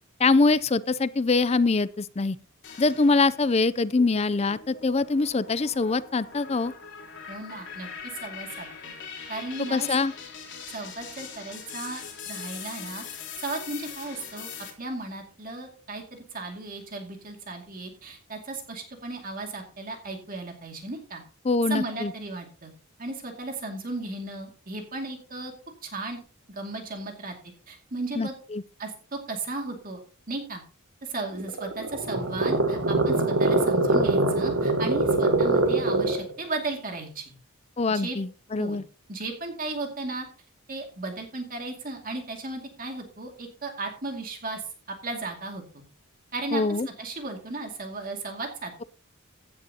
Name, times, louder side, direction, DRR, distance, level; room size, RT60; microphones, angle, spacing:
voice 1, 0.2-2.4 2.8-6.7 9.7-10.1 21.4-22.1 28.2-28.6 37.8-38.8 46.5-46.9, left 3 dB, 30° left, 0.4 m, -24 dB
sound 1, 2.6-3.5 4.0-14.7, left 6 dB, 55° left, 3.7 m, -41 dB
voice 2, 7.3-8.9 9.3-9.9 10.7-13.0 13.4-14.5 14.8-21.2 21.7-22.7 23.0-25.5 25.8-26.2 26.5-27.3 27.7-28.3 28.8-30.0 30.3-30.6 31.0-37.3 37.9-38.2 38.6-38.8 39.1-40.3 40.7-44.7 45.0-45.8 46.3-48.8, right 2 dB, 40° right, 2.3 m, -35 dB
sound 2, 31.4-36.3, right 2 dB, 60° right, 1.8 m, -23 dB
16.0 x 10.5 x 2.9 m
head